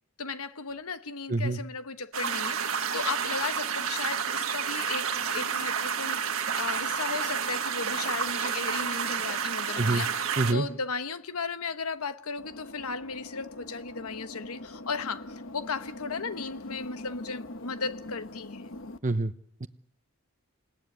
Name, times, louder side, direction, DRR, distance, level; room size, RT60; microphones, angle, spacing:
voice 1, 0.2-10.2 10.5-18.8, left 4 dB, 85° left, 1.1 m, -36 dB
sound 1, 2.1-10.5, right 7 dB, 70° right, 1.5 m, -30 dB
voice 2, 10.4-10.7 19.0-19.3 19.6-19.7, right 2 dB, 35° right, 0.9 m, -26 dB
sound 2, 12.4-19.0, left 1 dB, 60° left, 1.2 m, -43 dB
28.5 x 18.0 x 9.8 m
head